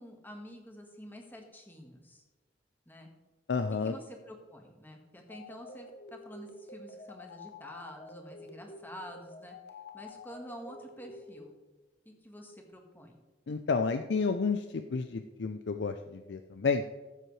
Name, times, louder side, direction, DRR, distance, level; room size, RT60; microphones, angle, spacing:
voice 1, 0.0-2.2 2.9-3.1 3.7-9.5 9.9-11.5 12.0-13.2, equal, 10° left, 2 dB, 1.5 m, -48 dB
voice 2, 3.5-3.9 13.5-16.8, left 4 dB, 85° left, 8 dB, 0.5 m, -31 dB
sound 1, 5.3-11.5, left 2 dB, 70° left, 1.1 m, -49 dB
14.5 x 7.7 x 3.2 m, 1.2 s
head